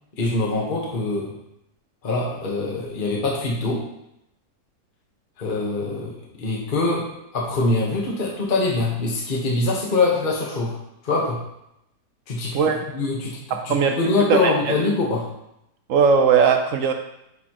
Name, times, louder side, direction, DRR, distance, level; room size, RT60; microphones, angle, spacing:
voice 1, 0.2-1.3 2.0-3.8 5.4-10.8 11.0-11.4 12.3-12.6 12.9-15.3, left 3 dB, 35° left, -3 dB, 1.2 m, -24 dB
voice 2, 13.7-14.5 15.9-16.9, right 6 dB, 65° right, 5 dB, 0.8 m, -18 dB
9.5 x 4.1 x 3.0 m, 0.82 s
omnidirectional pair, 1.8 m